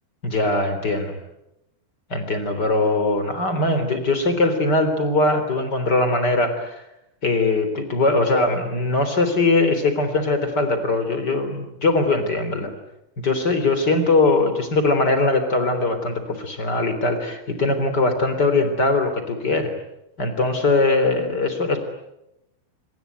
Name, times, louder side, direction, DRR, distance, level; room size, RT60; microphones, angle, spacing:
voice 1, 0.2-1.1 2.1-6.7 7.2-12.7 13.2-19.7 20.2-21.8, left 2 dB, 25° left, 8 dB, 3.3 m, -21 dB
26.0 x 23.5 x 9.3 m, 0.87 s
omnidirectional pair, 5.7 m